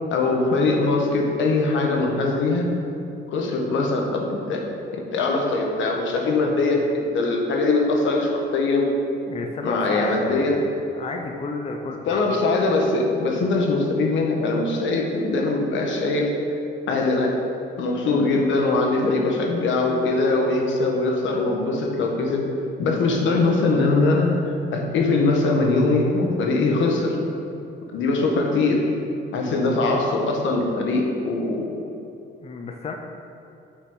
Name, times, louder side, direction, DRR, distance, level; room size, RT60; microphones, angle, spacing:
voice 1, 0.1-2.7 3.3-4.6 4.9-8.9 9.6-10.6 12.0-16.3 16.9-17.4 17.8-22.4 22.8-27.2 27.9-28.8 29.3-31.6, left 3 dB, 75° left, 1 dB, 1.3 m, -22 dB
voice 2, 9.3-12.4 32.4-32.9, left 3 dB, 30° left, 2 dB, 0.6 m, -32 dB
6.5 x 5.7 x 5.5 m, 2.7 s
cardioid pair, 115°, 20 cm